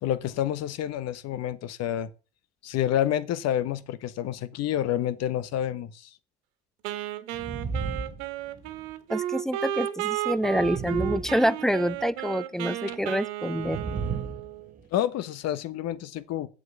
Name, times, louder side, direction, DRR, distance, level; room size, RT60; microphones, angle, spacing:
voice 1, 0.0-2.1 2.6-6.1 14.9-16.5, left 11 dB, 45° left, 1.2 m, -28 dB
Wind instrument woodwind instrument, 6.8-14.8, right 12 dB, 65° right, 1.6 m, -33 dB
sound 1, 7.3-8.9 10.4-12.0 13.6-14.8, right 5 dB, 25° right, 1.5 m, -34 dB
voice 2, 9.1-13.8, equal, ahead, 0.5 m, -27 dB
7.9 x 7.9 x 6.7 m
hypercardioid pair, 85°, 34 cm